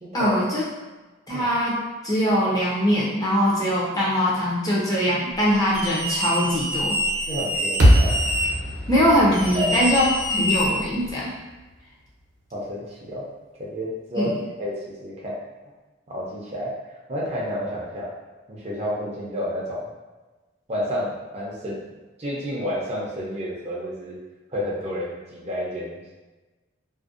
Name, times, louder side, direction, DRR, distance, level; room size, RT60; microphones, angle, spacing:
voice 1, 0.1-0.6 1.3-6.9 8.9-11.3 14.2-14.4, equal, 20° left, -6 dB, 0.5 m, -22 dB
sound 1, 5.7-8.5 9.3-11.1, equal, 85° left, 1.2 m, -26 dB
voice 2, 7.3-8.2 9.5-9.7 12.5-13.2 13.6-14.3 14.6-15.4 16.1-16.7 17.1-18.1 18.5-19.9 20.7-21.9 22.2-24.2 24.5-26.0, equal, 35° right, -5 dB, 0.5 m, -30 dB
sound 2, 7.8-12.1, equal, 75° right, 0.7 m, -23 dB
2.5 x 2.1 x 2.4 m, 1.2 s
head